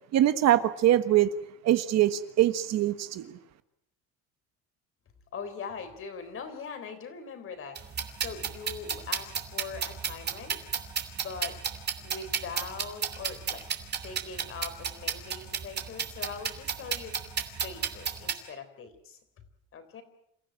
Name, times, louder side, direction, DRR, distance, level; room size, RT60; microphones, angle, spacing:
voice 1, 0.1-1.3 1.6-3.3, right 12 dB, 55° right, 11 dB, 1.4 m, -23 dB
voice 2, 5.3-10.6 11.1-11.6 12.0-13.7 14.0-17.2 17.6-19.2 19.7-20.0, left 5 dB, 40° left, 9 dB, 3.9 m, -41 dB
sound 1, 7.8-18.3, right 7 dB, 30° right, 2.9 m, -33 dB
28.5 x 15.5 x 9.0 m, 0.77 s
cardioid pair, 155°, 32 cm